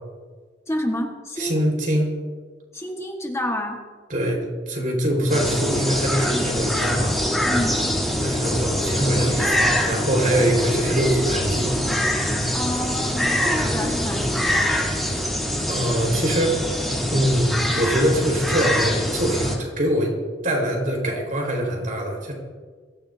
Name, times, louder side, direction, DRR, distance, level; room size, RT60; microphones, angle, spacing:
voice 1, 0.7-1.6 2.7-3.8 6.3-6.5 7.4-7.8 12.5-14.8, left 1 dB, 15° left, 1 dB, 1.5 m, -29 dB
voice 2, 1.4-2.1 4.1-4.4 4.7-7.1 8.2-11.8 15.7-16.7 17.1-20.1 20.4-22.3, right 1 dB, 50° right, 0 dB, 4.5 m, -23 dB
sound 1, 5.3-19.6, equal, ahead, 3.1 m, -24 dB
23.0 x 14.5 x 2.8 m, 1.5 s
head